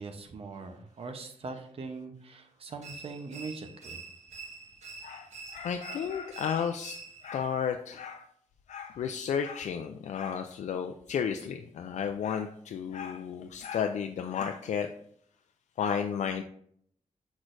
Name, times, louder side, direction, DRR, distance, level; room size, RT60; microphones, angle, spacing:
voice 1, 0.0-4.0, right 4 dB, 50° right, 6 dB, 0.8 m, -41 dB
sound 1, 2.8-7.4, right 4 dB, 70° right, 1.4 m, -46 dB
voice 2, 5.0-7.0 7.2-8.3 8.7-14.9 15.8-16.4, left 7 dB, 75° left, 6 dB, 0.4 m, -33 dB
6.2 x 6.0 x 2.6 m, 0.65 s
wide cardioid pair, 145°, 12 cm